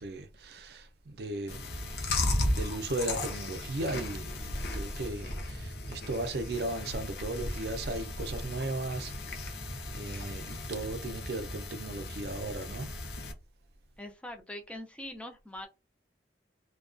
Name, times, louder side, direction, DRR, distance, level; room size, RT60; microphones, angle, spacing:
voice 1, 0.0-9.6 9.9-13.0, right 2 dB, 60° right, 0.5 m, -37 dB
Chewing mastication, 1.5-13.3, left 1 dB, 60° left, 0.5 m, -36 dB
voice 2, 14.0-15.7, left 1 dB, 5° left, 0.3 m, -42 dB
2.2 x 2.2 x 2.4 m
head